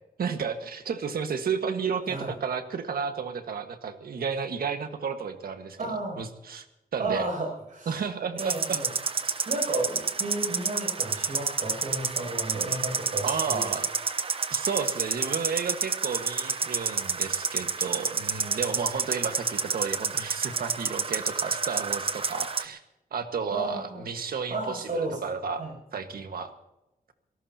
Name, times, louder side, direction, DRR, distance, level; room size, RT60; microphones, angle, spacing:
voice 1, 0.2-5.8 6.2-6.7 6.9-7.3 7.9-8.8 9.2-9.3 13.2-13.9 14.5-22.8 23.1-25.6 25.9-26.5, right 6 dB, 80° right, 7 dB, 1.6 m, -32 dB
voice 2, 5.8-6.2 7.0-8.0 8.4-8.9 9.5-13.7 23.5-24.0 24.5-25.2 25.6-25.7, right 2 dB, 60° right, 0 dB, 7.2 m, -33 dB
sound 1, 8.4-22.6, right 5 dB, 40° right, 0.9 m, -29 dB
25.5 x 18.0 x 2.9 m, 0.92 s
wide cardioid pair, 165°, 15 cm